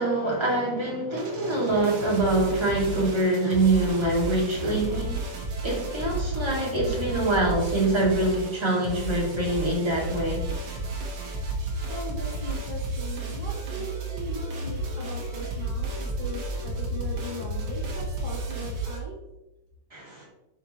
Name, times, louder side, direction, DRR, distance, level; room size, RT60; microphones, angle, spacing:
voice 1, 0.0-5.2 5.6-10.4 19.9-20.3, right 2 dB, 15° right, -4 dB, 1.2 m, -25 dB
sound 1, 1.1-19.0, right 2 dB, 60° right, 1.4 m, -32 dB
voice 2, 11.9-19.2, left 1 dB, 75° left, -6 dB, 0.4 m, -39 dB
9.5 x 5.4 x 3.0 m, 0.98 s
omnidirectional pair, 4.1 m